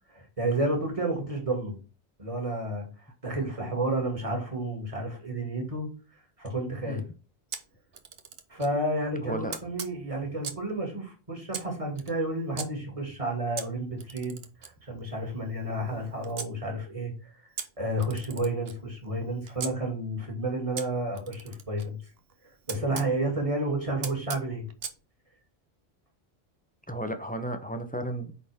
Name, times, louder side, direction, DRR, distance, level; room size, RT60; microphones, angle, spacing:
voice 1, 0.1-1.8 2.2-2.9 3.2-5.9 6.4-7.0 8.5-17.3 17.8-22.0 22.4-24.6, right 1 dB, 30° right, 1 dB, 2.5 m, -31 dB
Camera, 7.5-8.8 9.5-10.7 11.5-12.7 13.6-16.5 17.6-19.7 20.8-23.1 24.0-25.0, right 6 dB, 65° right, 1.1 m, -41 dB
voice 2, 9.2-9.6 26.9-28.4, right 1 dB, 10° left, 6 dB, 0.8 m, -33 dB
8.9 x 4.1 x 3.6 m, 0.33 s
omnidirectional pair, 1.1 m